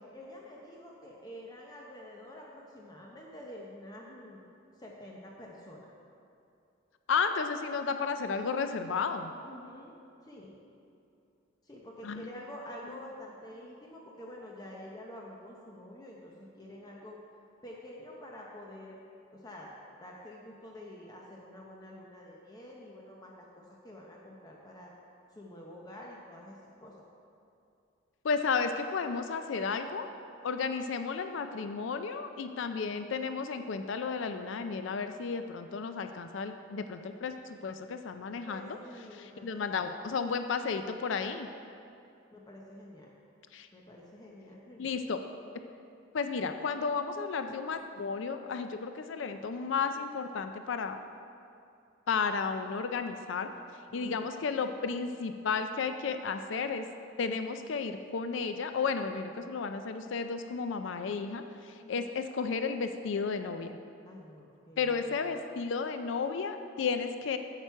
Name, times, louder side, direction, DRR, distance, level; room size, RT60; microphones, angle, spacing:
voice 1, 0.1-5.9 9.4-9.9 10.2-10.6 11.6-17.2 17.6-19.0 19.3-19.7 20.0-23.5 23.8-24.9 25.4-27.0 32.7-33.1 38.4-39.9 42.3-43.1 43.7-44.9 53.9-54.2 61.8-62.2 64.0-65.3, left 1 dB, 20° left, -2 dB, 0.7 m, -48 dB
voice 2, 7.1-9.3 12.0-12.3 28.2-30.1 30.4-38.8 39.1-41.5 43.5-43.7 44.8-45.2 46.1-51.0 52.1-53.5 53.9-56.9 57.2-63.8 64.8-67.4, left 5 dB, 65° left, 8 dB, 0.4 m, -33 dB
8.8 x 7.4 x 4.6 m, 2.6 s
head